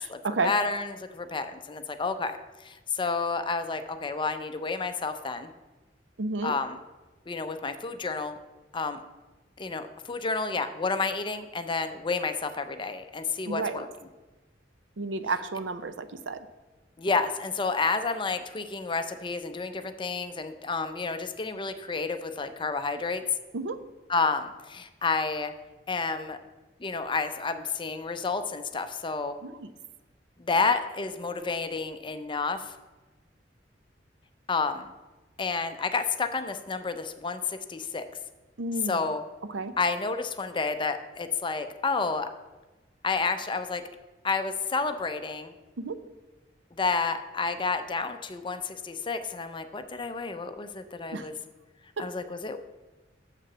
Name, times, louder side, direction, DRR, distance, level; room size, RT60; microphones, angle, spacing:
voice 1, 0.1-2.4 2.6-5.5 6.4-6.8 7.3-8.4 8.7-9.0 9.6-13.9 17.0-23.2 24.1-25.5 25.9-26.4 26.8-29.4 30.4-32.7 34.5-34.9 35.4-38.0 38.9-39.2 39.8-42.3 43.0-43.8 44.2-45.5 46.8-51.3 52.0-52.6, left 4 dB, 25° left, 9 dB, 0.6 m, -30 dB
voice 2, 6.2-6.5 13.5-13.8 15.0-16.5 23.5-23.8 29.4-29.7 38.6-39.0 39.5-39.7 45.8-46.0 51.1-51.3 52.0-52.1, right 3 dB, 90° right, 11 dB, 0.6 m, -31 dB
6.8 x 5.9 x 7.2 m, 1.2 s
head